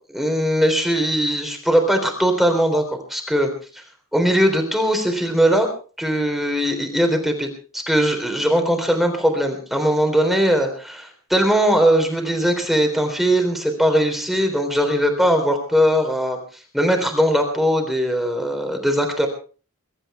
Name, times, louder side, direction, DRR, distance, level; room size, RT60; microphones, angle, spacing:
voice 1, 0.1-2.8 3.1-3.8 4.1-5.7 6.0-7.5 7.7-19.3, equal, ahead, 4 dB, 3.7 m, -20 dB
23.5 x 12.5 x 4.4 m, 0.39 s
head